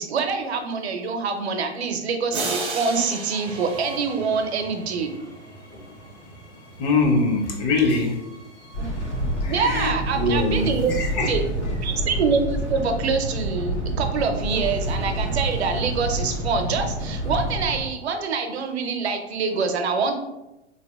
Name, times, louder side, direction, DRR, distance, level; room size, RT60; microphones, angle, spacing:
voice 1, 0.0-5.2 8.8-8.9 9.5-10.9 11.3-11.4 11.8-20.1, right 5 dB, 70° right, 6 dB, 0.6 m, -25 dB
sound 1, 2.3-5.0, right 3 dB, 20° right, 0.4 m, -32 dB
Train, 3.4-12.6, right 1 dB, 65° left, 1.3 m, -46 dB
voice 2, 6.8-8.2 9.4-11.4, left 3 dB, 40° left, 0 dB, 0.7 m, -23 dB
sound 2, 8.7-17.8, right 1 dB, 90° left, 1.3 m, -28 dB
3.8 x 2.7 x 2.2 m, 0.96 s
figure-of-eight pair, 100°, 34 cm